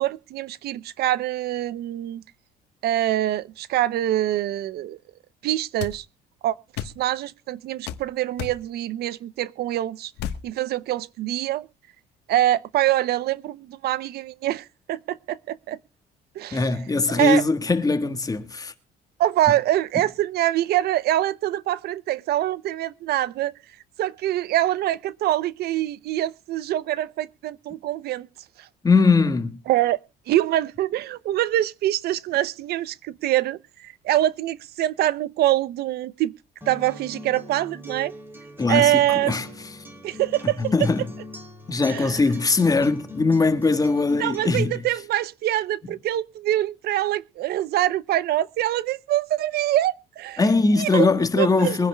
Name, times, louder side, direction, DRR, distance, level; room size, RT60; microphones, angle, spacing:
voice 1, 0.0-2.2 2.8-5.0 5.4-6.1 6.4-10.1 10.4-11.7 12.3-15.8 16.4-16.6 17.2-17.4 19.2-23.5 24.0-28.3 28.6-28.7 29.7-30.0 30.3-36.3 36.7-38.1 38.7-39.5 40.0-40.7 41.9-42.2 44.2-50.4 50.8-51.1 51.4-51.9, right 14 dB, 70° right, 0.7 m, -24 dB
sound 1, 5.8-6.0 6.8-7.0 7.9-8.0 8.4-8.6 10.2-10.4, left 10 dB, 85° left, 1.3 m, -31 dB
voice 2, 16.5-18.7 28.8-29.6 38.6-38.9 39.3-39.5 40.7-41.0 41.7-44.8 50.4-51.9, left 3 dB, 20° left, 1.6 m, -21 dB
Acoustic guitar, 36.6-44.6, left 2 dB, 10° right, 3.5 m, -40 dB
23.5 x 10.5 x 2.2 m
cardioid pair, 110°, 17 cm